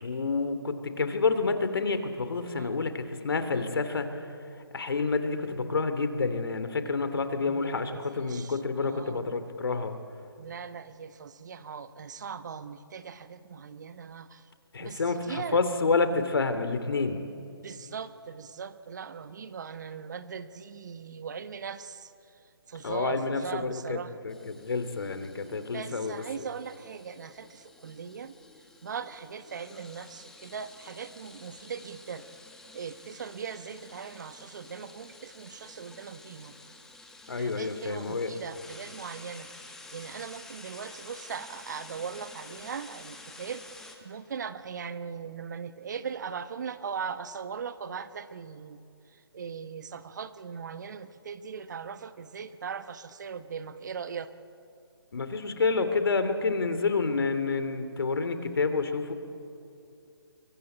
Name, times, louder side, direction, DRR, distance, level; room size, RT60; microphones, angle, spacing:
voice 1, 0.0-4.3 4.7-10.0 14.7-17.2 22.8-26.2 37.3-38.3 55.1-59.1, left 4 dB, 60° left, 10 dB, 2.7 m, -29 dB
voice 2, 2.5-2.9 7.4-7.6 7.9-8.5 8.8-9.4 10.4-14.4 14.8-15.6 17.6-22.1 22.7-24.1 25.7-28.3 28.8-32.2 32.7-36.5 37.4-43.6 44.0-48.8 49.3-54.3, right 6 dB, 45° right, 12 dB, 1.1 m, -39 dB
sound 1, 24.3-44.0, left 2 dB, 5° left, 1.7 m, -50 dB
28.5 x 22.5 x 8.7 m, 2.6 s
figure-of-eight pair, 150°, 13 cm